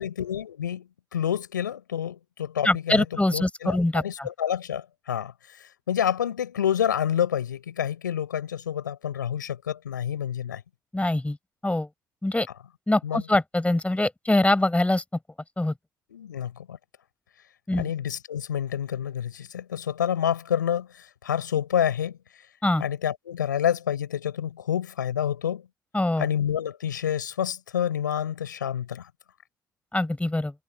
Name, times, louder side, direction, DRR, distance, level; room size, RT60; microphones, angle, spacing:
voice 1, 0.0-3.0 3.3-5.3 5.9-10.6 13.0-13.2 16.1-16.8 17.7-20.9 21.2-22.2 22.8-25.6 26.2-29.1, left 9 dB, 85° left, 6.5 m, -28 dB
voice 2, 2.6-4.3 10.9-11.4 11.6-11.9 12.2-12.5 12.9-15.0 15.6-15.7 17.7-17.9 22.6-22.8 25.9-26.3 29.9-30.5, left 1 dB, 15° left, 7.2 m, -23 dB
figure-of-eight pair, 45°, 10 cm